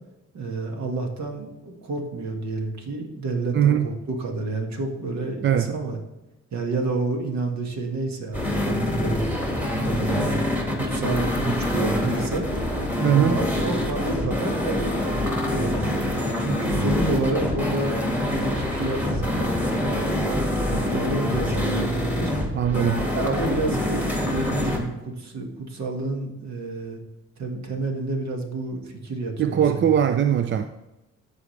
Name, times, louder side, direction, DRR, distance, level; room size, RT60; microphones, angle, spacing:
voice 1, 0.3-6.0 6.5-9.3 9.8-12.5 13.0-15.9 16.4-22.3 23.1-27.0 27.4-29.8, right 3 dB, 65° right, 1.8 m, -29 dB
voice 2, 3.5-3.9 5.4-5.7 13.0-13.4 22.5-23.1 29.4-30.7, right 9 dB, 40° right, 0.4 m, -20 dB
sound 1, 8.3-24.8, left 1 dB, 5° right, 1.9 m, -25 dB
14.0 x 5.0 x 3.3 m
cardioid pair, 90°, 30 cm